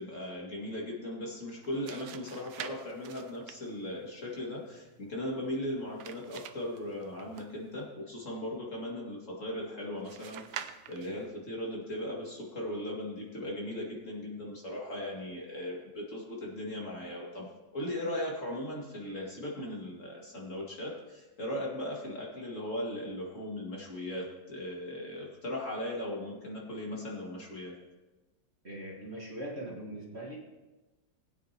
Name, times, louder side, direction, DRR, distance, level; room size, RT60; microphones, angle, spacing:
voice 1, 0.0-27.7, left 1 dB, 40° left, -3 dB, 2.4 m, -38 dB
sound 1, 1.5-7.9 10.0-11.3, right 10 dB, 85° right, 1.4 m, -47 dB
voice 2, 28.6-30.4, right 1 dB, 35° right, -3 dB, 1.8 m, -41 dB
20.0 x 9.3 x 2.9 m, 1.2 s
omnidirectional pair, 2.1 m